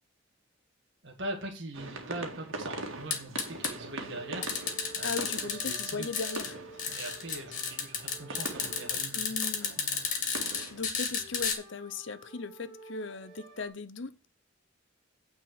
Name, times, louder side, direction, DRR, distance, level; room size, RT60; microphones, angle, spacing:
voice 1, 1.0-6.1 6.9-9.3 9.6-10.3, right 1 dB, 60° right, 1.6 m, -42 dB
sound 1, 1.7-10.8, right 2 dB, 85° right, 1.9 m, -43 dB
sound 2, 3.1-3.7 4.4-6.5 6.8-11.5, left 6 dB, 40° left, 2.0 m, -32 dB
sound 3, 3.6-13.7, right 2 dB, 35° right, 2.6 m, -52 dB
voice 2, 5.0-7.1 9.1-9.8 10.7-14.3, left 4 dB, 65° left, 0.7 m, -38 dB
9.3 x 4.4 x 6.3 m
head